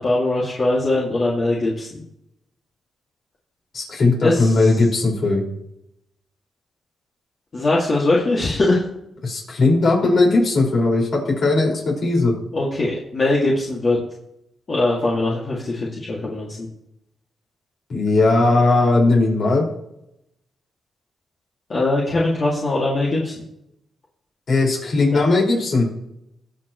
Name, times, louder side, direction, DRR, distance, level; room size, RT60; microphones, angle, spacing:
voice 1, 0.0-2.0 4.2-4.6 7.5-8.8 12.5-14.0 14.7-16.7 21.7-23.3 25.1-25.3, left 2 dB, 45° left, -5 dB, 2.4 m, -21 dB
voice 2, 3.7-5.4 9.2-12.3 17.9-19.7 24.5-25.9, left 2 dB, 60° left, -3 dB, 5.3 m, -18 dB
20.5 x 7.0 x 3.2 m, 0.81 s
cardioid pair, 80°, 0 cm